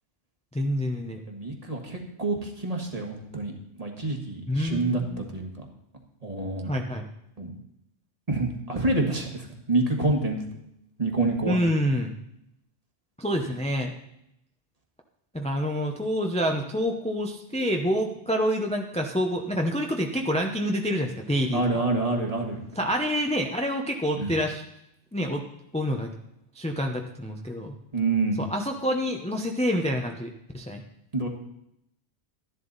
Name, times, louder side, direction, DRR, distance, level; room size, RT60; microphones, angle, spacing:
voice 1, 0.5-1.2 4.5-5.2 6.6-7.1 11.4-12.1 13.2-13.9 15.3-21.6 22.8-24.6 25.1-25.4 25.7-26.1 26.5-27.7 28.4-30.8, equal, 5° left, 2 dB, 0.7 m, -27 dB
voice 2, 1.3-3.5 3.8-5.7 6.2-6.7 7.4-7.5 8.3-10.4 11.0-11.6 21.5-22.6 24.2-24.3 27.9-28.4 31.1-31.3, right 2 dB, 30° right, 2 dB, 1.7 m, -27 dB
12.5 x 11.0 x 4.1 m, 0.79 s
omnidirectional pair, 1.2 m